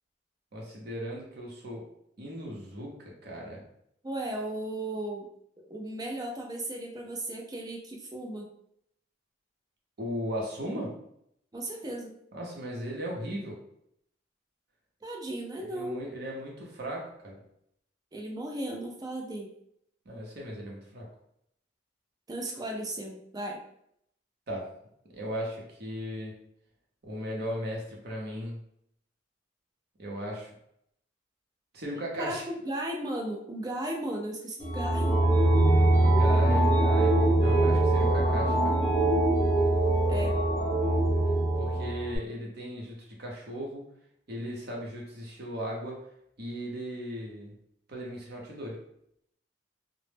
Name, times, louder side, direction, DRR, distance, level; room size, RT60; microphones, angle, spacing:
voice 1, 0.5-1.9 2.2-3.6 10.0-10.9 12.3-13.6 15.7-17.4 20.1-21.1 24.5-24.7 25.1-26.4 27.0-28.6 30.0-30.5 31.7-32.5 36.0-38.8 41.6-43.8 44.3-46.0 46.4-47.5 47.9-48.8, equal, 55° right, -2 dB, 0.6 m, -37 dB
voice 2, 4.0-5.3 5.6-8.5 11.5-12.2 15.0-16.0 18.1-19.5 22.3-23.6 32.2-32.4 32.6-35.2 40.1-40.4, right 1 dB, 20° right, 1 dB, 0.3 m, -35 dB
sound 1, 34.6-42.2, right 1 dB, 35° left, 0.8 m, -23 dB
2.1 x 2.0 x 3.2 m, 0.74 s
head